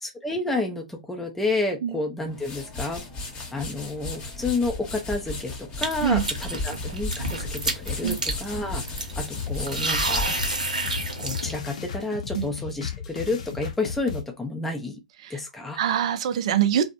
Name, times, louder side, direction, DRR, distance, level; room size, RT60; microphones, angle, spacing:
voice 1, 0.0-3.0 3.5-10.6 11.2-15.0 15.3-15.8, left 2 dB, 5° left, 0.4 m, -30 dB
sound 1, 2.2-11.5, left 3 dB, 25° left, 0.8 m, -35 dB
sound 2, 5.8-11.5, right 2 dB, 90° right, 0.7 m, -30 dB
sound 3, 9.3-14.2, left 7 dB, 65° left, 0.6 m, -35 dB
voice 2, 15.8-16.9, right 9 dB, 55° right, 0.4 m, -24 dB
2.5 x 2.0 x 2.7 m
figure-of-eight pair, 115°, 4 cm